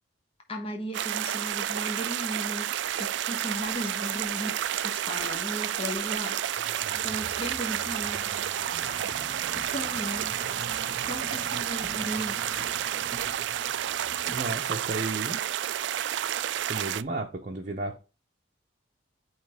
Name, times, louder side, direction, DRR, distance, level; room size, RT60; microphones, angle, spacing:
voice 1, 0.5-8.3 9.6-10.4 11.0-12.4, equal, 30° left, 1.1 m, -36 dB
sound 1, 0.9-17.0, right 11 dB, 65° right, 0.3 m, -30 dB
sound 2, 6.0-15.4, right 1 dB, 15° right, 1.5 m, -44 dB
voice 2, 14.3-15.5 16.7-18.0, right 2 dB, 40° right, 0.7 m, -33 dB
9.2 x 3.2 x 3.4 m
head